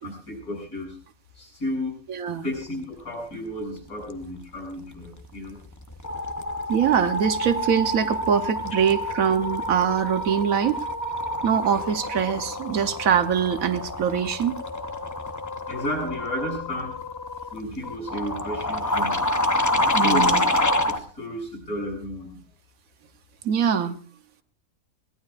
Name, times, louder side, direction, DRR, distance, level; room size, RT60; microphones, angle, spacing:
voice 1, 0.0-1.0 1.4-1.9 2.4-5.6 15.7-17.0 17.5-19.3 19.8-22.4, left 1 dB, 85° left, -1 dB, 7.7 m, -33 dB
voice 2, 2.1-2.4 6.7-10.8 11.4-14.6 19.9-20.4 23.4-24.0, right 8 dB, 70° right, 10 dB, 1.3 m, -23 dB
sound 1, 5.2-5.5 5.8-21.0, left 1 dB, 20° left, 0.5 m, -27 dB
22.5 x 17.5 x 2.4 m, 0.42 s
omnidirectional pair, 1.5 m